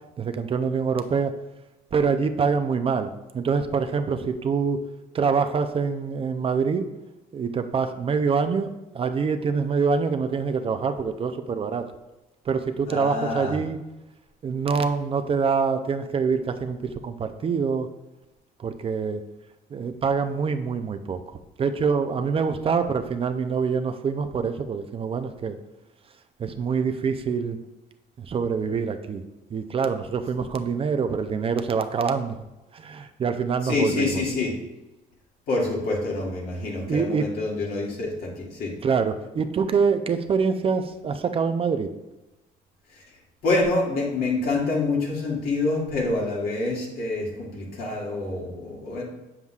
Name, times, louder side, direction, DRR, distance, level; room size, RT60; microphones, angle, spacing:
voice 1, 0.2-1.3 1.9-4.8 5.1-6.9 7.3-11.9 12.5-13.8 14.4-17.9 18.6-19.2 19.7-25.6 26.4-27.6 28.2-29.2 29.5-32.4 32.7-34.2 36.9-37.3 38.8-41.9, right 5 dB, 35° right, 8 dB, 0.5 m, -25 dB
voice 2, 12.8-13.6 33.6-34.6 35.5-38.8 42.9-43.2 43.4-49.1, left 2 dB, 65° left, -3 dB, 2.2 m, -27 dB
7.8 x 7.2 x 2.4 m, 0.99 s
cardioid pair, 110°, 17 cm